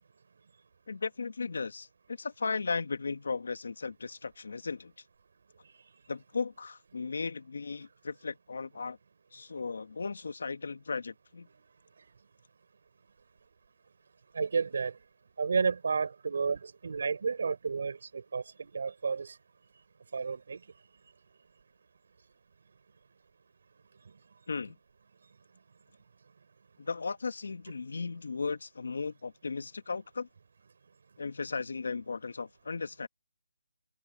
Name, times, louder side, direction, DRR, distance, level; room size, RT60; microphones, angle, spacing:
voice 1, 0.9-4.9 6.1-9.0 9.3-11.5 24.5-24.8 26.8-30.3 31.2-33.1, left 4 dB, 60° left, 1.8 m, -36 dB
voice 2, 14.3-15.0 15.4-19.4 20.1-20.6, right 5 dB, 50° right, 4.3 m, -31 dB
hypercardioid pair, 175°, 0 cm